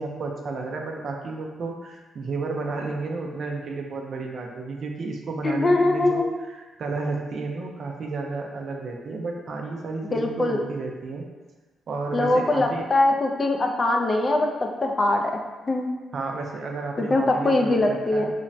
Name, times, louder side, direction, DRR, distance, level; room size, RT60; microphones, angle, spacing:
voice 1, 0.0-11.2 11.9-12.9 16.1-18.3, right 3 dB, 60° right, 1 dB, 0.4 m, -32 dB
voice 2, 5.4-6.3 10.1-10.6 12.1-14.5 14.8-15.4 15.7-15.9 17.0-18.3, left 2 dB, 35° left, 2 dB, 0.3 m, -22 dB
3.1 x 2.0 x 2.6 m, 1.2 s
cardioid pair, 85°, 0 cm